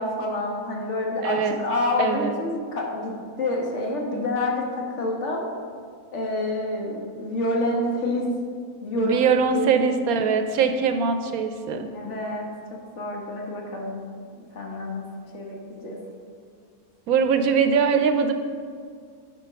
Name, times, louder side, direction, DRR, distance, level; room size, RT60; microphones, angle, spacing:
voice 1, 0.0-3.1 3.4-5.4 6.1-8.3 8.8-9.2 9.5-9.7 11.9-14.0 14.4-15.1 15.3-16.0, left 2 dB, 55° left, -1 dB, 1.7 m, -28 dB
voice 2, 1.2-1.6 2.0-2.4 4.1-4.2 9.0-11.9 17.1-18.3, right 6 dB, 80° right, 7 dB, 1.1 m, -22 dB
10.0 x 4.7 x 5.7 m, 2.1 s
omnidirectional pair, 1.5 m